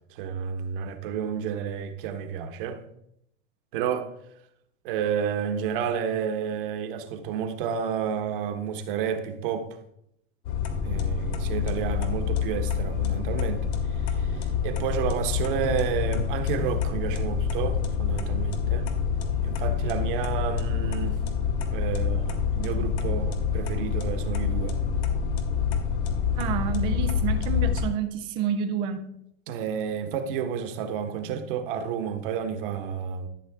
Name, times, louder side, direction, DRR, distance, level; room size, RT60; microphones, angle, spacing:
voice 1, 0.1-2.8 3.7-4.1 4.8-9.7 10.8-18.9 19.4-21.2 21.7-24.8 29.5-33.3, right 7 dB, 50° right, 1.4 m, -30 dB
sound 1, 10.4-27.8, left 7 dB, 70° left, 2.1 m, -27 dB
voice 2, 11.0-11.3 26.4-29.1, right 7 dB, 15° right, 0.3 m, -29 dB
13.0 x 7.4 x 3.6 m
supercardioid pair, 160°, 35 cm